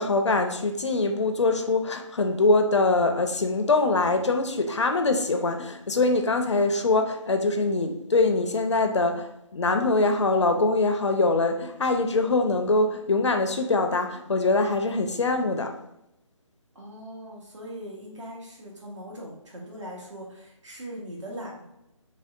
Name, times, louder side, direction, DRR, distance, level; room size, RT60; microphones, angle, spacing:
voice 1, 0.0-9.3 9.5-15.7, left 3 dB, 60° left, 6 dB, 0.4 m, -23 dB
voice 2, 16.7-21.8, equal, 60° right, -2 dB, 1.1 m, -40 dB
3.1 x 2.7 x 2.3 m, 0.83 s
figure-of-eight pair, 155°, 17 cm